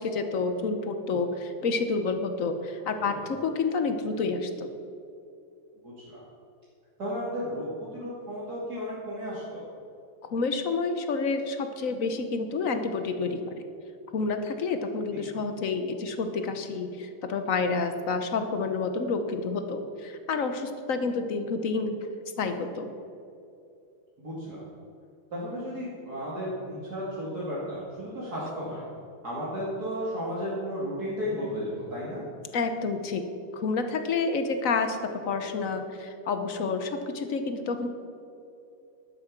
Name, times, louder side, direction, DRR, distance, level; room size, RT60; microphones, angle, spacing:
voice 1, 0.0-4.7 10.2-13.6 14.1-22.0 22.4-22.9 32.5-33.2 33.5-35.0 35.2-37.9, left 4 dB, 55° left, 8 dB, 0.9 m, -29 dB
voice 2, 5.8-6.2 7.0-7.7 7.9-9.6 15.1-15.2 24.2-24.6 25.3-28.8 29.2-32.2, equal, 45° right, -7 dB, 2.9 m, -34 dB
12.0 x 8.8 x 7.3 m, 2.6 s
omnidirectional pair, 2.4 m